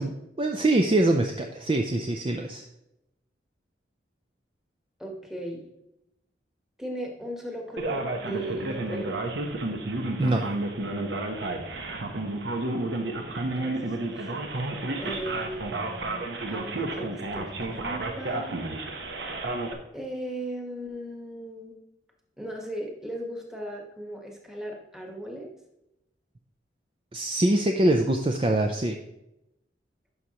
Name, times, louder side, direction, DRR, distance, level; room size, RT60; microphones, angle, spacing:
voice 1, 0.0-2.6 10.2-10.5 27.1-29.0, right 1 dB, 25° right, 3 dB, 0.4 m, -24 dB
voice 2, 5.0-5.7 6.8-9.2 13.5-14.4 15.0-18.6 19.9-21.7 22.4-25.5, right 1 dB, 5° right, 0 dB, 1.2 m, -37 dB
Male speech man speaking, 7.8-19.7, right 2 dB, 65° right, 0.9 m, -31 dB
11.0 x 5.6 x 2.9 m, 0.88 s
head